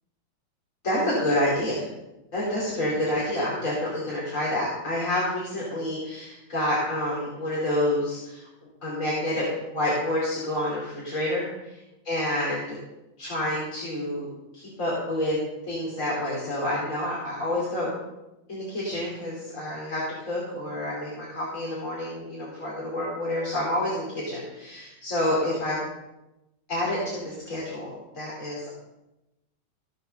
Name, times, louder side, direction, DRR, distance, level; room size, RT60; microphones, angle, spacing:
voice 1, 0.8-1.8 2.3-8.5 8.8-9.5 9.7-11.8 12.0-12.8 13.2-14.3 14.5-15.4 15.7-17.9 18.5-25.8 26.7-28.8, left 1 dB, 25° left, -5 dB, 3.1 m, -28 dB
15.5 x 6.5 x 6.7 m, 0.97 s
omnidirectional pair, 3.6 m